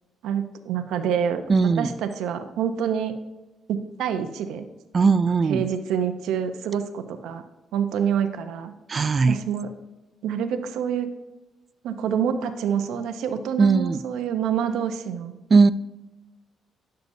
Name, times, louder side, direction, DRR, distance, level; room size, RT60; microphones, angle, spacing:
voice 1, 0.2-1.4 1.8-3.2 3.7-4.7 5.2-7.4 7.7-8.7 9.3-9.7 10.2-11.1 11.8-15.3, right 8 dB, 85° right, 7 dB, 0.7 m, -27 dB
voice 2, 1.5-1.9 4.9-5.6 8.9-9.4 13.6-14.0 15.5-15.7, right 4 dB, 40° right, 15 dB, 0.3 m, -18 dB
10.5 x 6.6 x 2.7 m, 1.1 s
cardioid pair, 90°, 0 cm